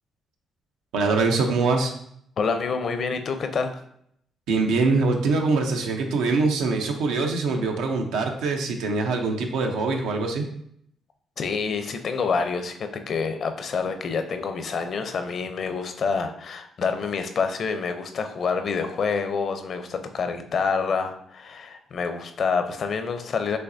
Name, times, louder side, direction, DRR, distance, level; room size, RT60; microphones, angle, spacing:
voice 1, 0.9-1.9 4.5-10.4, right 3 dB, 90° right, 3 dB, 0.7 m, -23 dB
voice 2, 2.4-3.7 11.4-23.6, left 5 dB, 55° left, 7 dB, 0.5 m, -27 dB
5.6 x 3.2 x 2.6 m, 0.70 s
cardioid pair, 90°, 0 cm